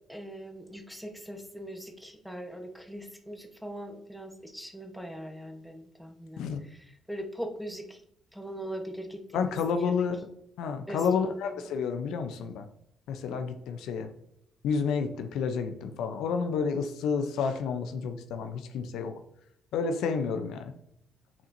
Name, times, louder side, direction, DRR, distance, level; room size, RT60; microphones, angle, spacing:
voice 1, 0.1-8.0 8.3-10.1 10.9-11.6 13.3-13.4, equal, ahead, 4 dB, 1.0 m, -41 dB
voice 2, 9.3-10.2 10.6-12.6 13.1-14.1 14.6-19.1 19.7-20.6, left 5 dB, 85° left, 7 dB, 0.6 m, -30 dB
8.5 x 4.3 x 2.6 m, 0.74 s
cardioid pair, 90°, 0 cm